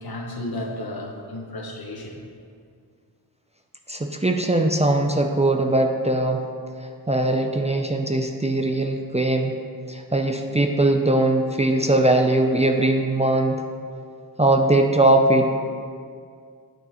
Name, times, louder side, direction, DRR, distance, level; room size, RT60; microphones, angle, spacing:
voice 1, 0.0-2.2, left 1 dB, 60° left, 1 dB, 1.2 m, -33 dB
voice 2, 3.9-6.4 7.1-9.6 9.9-13.6 14.4-15.6, right 2 dB, 15° right, 3 dB, 0.5 m, -20 dB
9.4 x 7.9 x 3.0 m, 2.2 s
wide cardioid pair, 65°, 41 cm